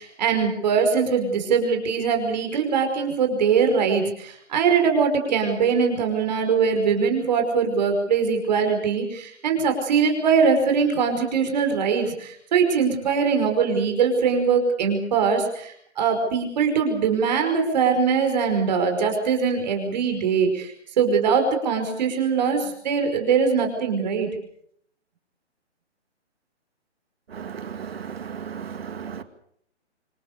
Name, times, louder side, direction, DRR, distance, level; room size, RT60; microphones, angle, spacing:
voice 1, 0.0-24.3, right 6 dB, 35° right, 5.4 m, -22 dB
voice 2, 27.3-29.2, right 7 dB, 55° right, 2.3 m, -35 dB
26.5 x 20.5 x 6.9 m
hypercardioid pair, 160°, 35 cm